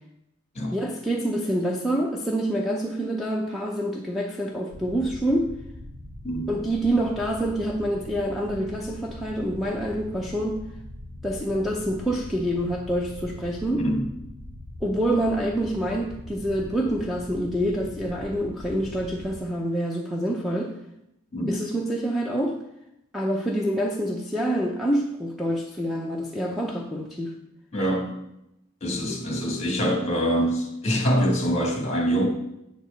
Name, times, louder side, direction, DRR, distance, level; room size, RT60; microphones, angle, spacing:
voice 1, 0.7-5.5 6.5-10.6 11.2-13.9 14.8-20.7 21.5-22.6 23.1-27.4, right 1 dB, ahead, -1 dB, 0.5 m, -26 dB
sound 1, 4.7-19.4, left 1 dB, 55° right, 1.8 m, -41 dB
voice 2, 13.8-14.1 21.3-21.6 27.7-28.2 28.8-32.3, equal, 30° left, 2 dB, 1.7 m, -25 dB
8.2 x 4.6 x 6.6 m, 0.85 s
head